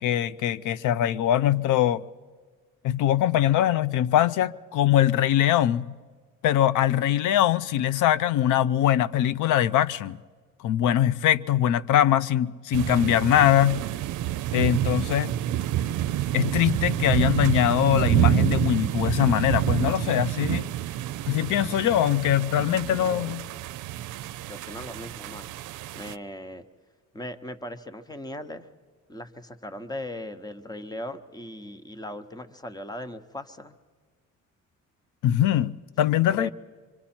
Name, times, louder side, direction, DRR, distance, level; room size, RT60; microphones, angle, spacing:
voice 1, 0.0-2.0 2.8-5.9 6.4-10.2 10.6-13.8 14.5-15.3 16.3-20.7 21.3-23.4 35.2-36.5, left 11 dB, 80° left, 0.5 m, -22 dB
sound 1, 12.7-26.1, right 13 dB, 85° right, 0.5 m, -28 dB
voice 2, 23.0-23.4 24.5-25.5 25.9-26.6 27.1-28.7 29.1-33.8 36.3-36.5, left 1 dB, 15° left, 0.9 m, -38 dB
25.5 x 23.5 x 4.4 m
cardioid pair, 90°, 30 cm